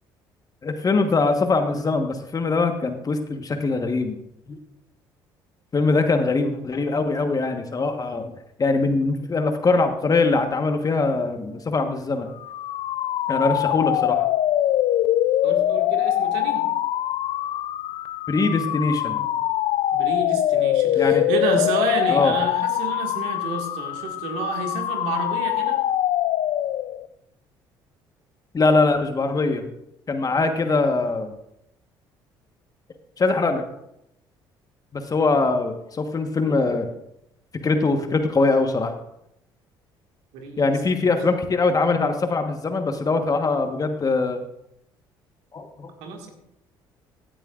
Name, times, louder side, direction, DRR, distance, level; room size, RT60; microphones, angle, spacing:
voice 1, 0.6-4.2 5.7-8.3 8.6-12.3 13.3-14.2 18.3-19.3 20.9-21.2 22.1-22.4 28.5-29.6 30.1-31.3 33.2-33.6 34.9-36.9 37.6-38.9 40.6-44.4 45.5-45.9, left 3 dB, 35° left, 6 dB, 1.2 m, -22 dB
sound 1, 12.4-27.1, left 12 dB, 65° left, 0.4 m, -23 dB
voice 2, 15.4-16.7 19.9-25.8 40.3-41.1 46.0-46.3, right 4 dB, 80° right, 3 dB, 1.9 m, -30 dB
15.0 x 8.8 x 2.4 m, 0.80 s
supercardioid pair, 65°, 11 cm